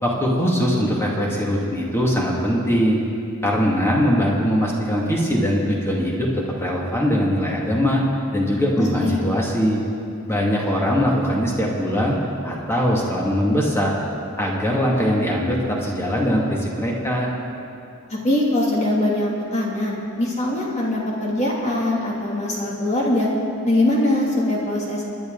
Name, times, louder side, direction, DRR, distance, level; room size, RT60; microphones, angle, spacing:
voice 1, 0.0-3.0 3.4-6.3 6.6-8.0 8.3-9.8 10.3-12.2 12.4-14.0 14.4-17.3, equal, 10° left, -3 dB, 2.2 m, -21 dB
voice 2, 8.8-9.2 18.1-23.3 23.6-25.1, left 1 dB, 30° left, -4 dB, 2.6 m, -22 dB
27.0 x 11.0 x 3.9 m, 2.6 s
head